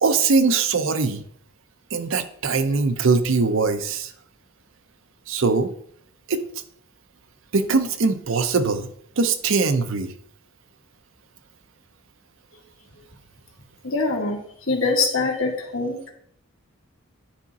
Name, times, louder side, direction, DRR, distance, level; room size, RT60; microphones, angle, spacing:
voice 1, 0.0-1.2 1.9-4.1 5.3-5.7 6.3-6.4 7.5-8.9 9.2-10.1, right 4 dB, 60° right, 9 dB, 0.6 m, -21 dB
voice 2, 13.8-14.4 14.7-16.1, left 3 dB, 65° left, -1 dB, 1.9 m, -23 dB
10.0 x 5.1 x 4.1 m, 0.66 s
head